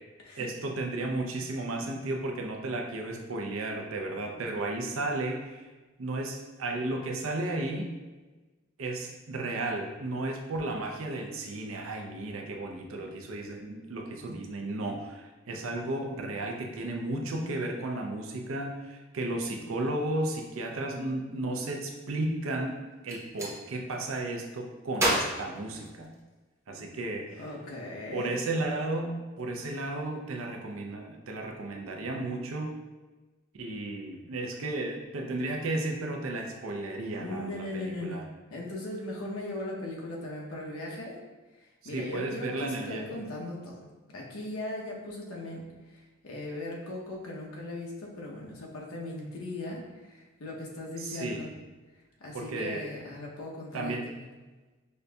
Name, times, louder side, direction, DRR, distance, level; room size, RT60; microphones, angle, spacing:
voice 1, 0.4-5.7 6.0-8.0 8.8-26.2 26.7-27.4 28.1-32.7 33.5-38.2 41.9-43.1 51.0-51.5 52.3-52.9 53.7-54.1, right 2 dB, 70° right, 2 dB, 0.5 m, -34 dB
Gunshot gunfire, 22.9-23.5 24.9-26.4, right 1 dB, 15° right, 0.7 m, -30 dB
voice 2, 27.4-28.4 37.2-38.3 38.5-41.2 41.5-43.9 44.1-51.5 52.2-54.2, left 1 dB, 90° left, -2 dB, 0.8 m, -38 dB
5.4 x 2.6 x 2.3 m, 1.2 s
head